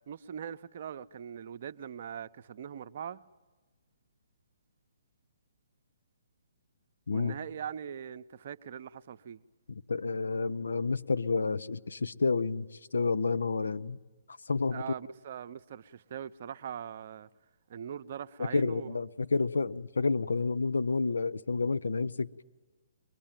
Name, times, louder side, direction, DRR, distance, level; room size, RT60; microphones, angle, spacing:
voice 1, 0.1-3.2 7.1-9.4 14.7-17.3 17.7-18.9, right 8 dB, 50° right, 0.7 m, -41 dB
voice 2, 9.7-12.7 12.9-14.0 14.5-14.9 18.4-22.4, left 4 dB, 75° left, 0.7 m, -30 dB
23.0 x 21.0 x 9.0 m
figure-of-eight pair, 135°, 0 cm